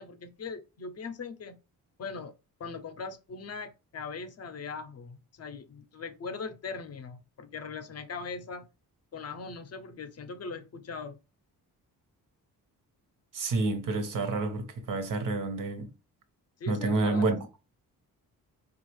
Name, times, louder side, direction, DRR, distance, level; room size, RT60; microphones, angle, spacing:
voice 1, 0.0-1.6 2.0-2.3 2.6-8.6 9.1-11.2 16.6-17.2, left 5 dB, 45° left, 0.6 m, -40 dB
voice 2, 13.3-15.9 16.7-17.4, right 3 dB, 60° right, 1.0 m, -29 dB
4.6 x 2.4 x 3.1 m
cardioid pair, 125°, 37 cm